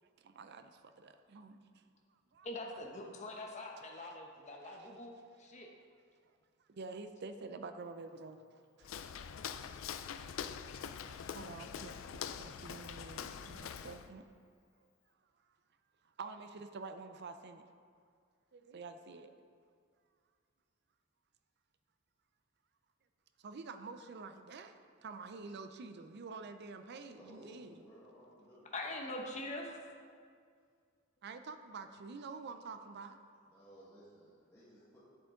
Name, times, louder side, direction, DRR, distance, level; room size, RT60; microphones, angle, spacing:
voice 1, 0.0-1.7 2.3-2.5 3.9-4.2 4.6-5.0 6.7-8.9 11.3-14.2 16.0-17.6 18.5-19.3 23.4-27.8 31.2-33.2, right 4 dB, 55° right, 9 dB, 0.5 m, -48 dB
voice 2, 2.4-5.7 28.7-29.8, left 2 dB, 35° left, 1 dB, 0.9 m, -43 dB
Walk footsteps, 8.8-14.1, left 7 dB, 75° left, 0.4 m, -44 dB
voice 3, 27.1-29.0 33.5-35.0, right 1 dB, 15° left, -10 dB, 1.6 m, -58 dB
9.4 x 8.1 x 3.8 m, 2.2 s
head